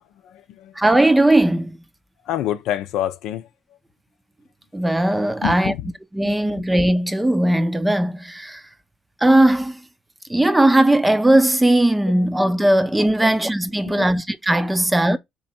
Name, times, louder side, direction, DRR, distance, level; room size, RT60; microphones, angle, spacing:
voice 1, 0.2-0.7 2.3-3.5 5.4-5.9 6.2-6.6 12.2-12.3 13.2-13.3 13.8-14.1, left 12 dB, 80° left, 0.5 m, -28 dB
voice 2, 0.8-1.8 4.7-5.7 6.1-8.6 9.2-9.8 10.3-15.2, right 1 dB, 10° right, 0.6 m, -18 dB
3.5 x 3.1 x 4.2 m
supercardioid pair, 75°, 0 cm